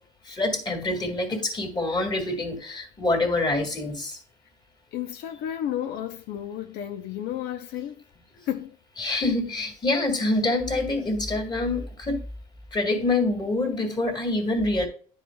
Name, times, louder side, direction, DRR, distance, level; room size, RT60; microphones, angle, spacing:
voice 1, 0.3-4.2 9.0-12.2 12.7-14.9, left 2 dB, 25° left, 1.9 m, -26 dB
voice 2, 4.9-8.0 8.5-8.8, left 11 dB, 85° left, 0.6 m, -32 dB
10.5 x 4.9 x 2.2 m
cardioid pair, 110°, 17 cm